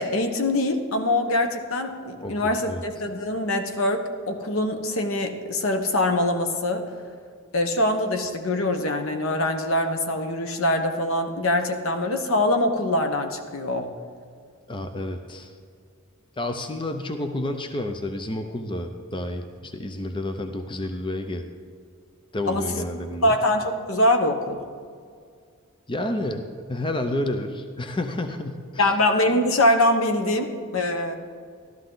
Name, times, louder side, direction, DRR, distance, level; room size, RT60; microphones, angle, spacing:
voice 1, 0.0-6.8 7.5-13.9 22.5-22.8 23.2-24.6 28.8-31.2, left 1 dB, 75° left, 6 dB, 1.1 m, -23 dB
voice 2, 2.2-2.8 14.7-15.5 16.4-21.4 22.3-23.4 25.9-26.4 26.7-28.9, left 1 dB, 25° left, 6 dB, 0.6 m, -30 dB
13.5 x 12.5 x 3.9 m, 2.2 s
head